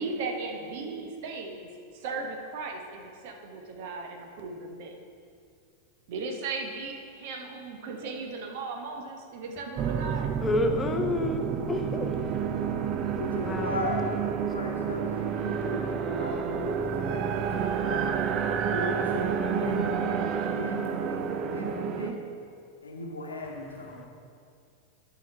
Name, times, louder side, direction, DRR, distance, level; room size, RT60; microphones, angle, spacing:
voice 1, 0.0-1.7 1.9-5.0 6.1-10.3, right 3 dB, 50° right, 3 dB, 0.9 m, -36 dB
sound 1, 9.8-22.1, right 7 dB, 35° right, 0.4 m, -29 dB
voice 2, 10.4-12.1 13.5-13.7, left 2 dB, 15° left, 4 dB, 0.7 m, -28 dB
voice 3, 13.2-14.2 14.5-18.1 18.7-22.2 22.8-24.1, left 1 dB, 75° left, 0 dB, 1.1 m, -36 dB
10.5 x 4.8 x 4.7 m, 2.3 s
figure-of-eight pair, 90°, 0 cm